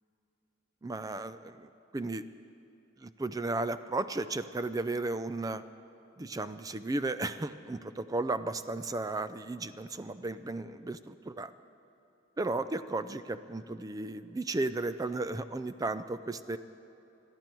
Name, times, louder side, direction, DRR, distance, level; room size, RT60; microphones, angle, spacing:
voice 1, 0.8-2.2 3.0-5.6 6.2-11.5 12.4-16.6, right 2 dB, 20° right, 13 dB, 0.4 m, -34 dB
21.0 x 13.5 x 4.5 m, 3.0 s
head